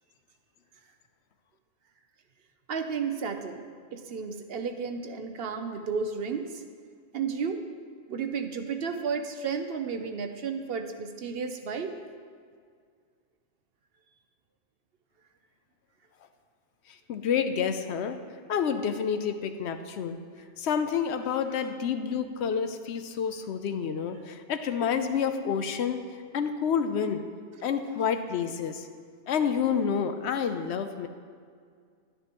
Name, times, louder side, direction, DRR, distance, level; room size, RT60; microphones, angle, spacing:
voice 1, 2.7-3.7 3.9-6.6 7.1-7.6 8.1-12.0, right 5 dB, 60° right, 7 dB, 0.7 m, -32 dB
voice 2, 16.9-18.2 18.5-20.2 20.6-26.0 26.3-27.2 27.6-28.9 29.3-31.1, left 7 dB, 70° left, 8 dB, 0.8 m, -29 dB
11.0 x 10.5 x 3.0 m, 2.1 s
omnidirectional pair, 1.2 m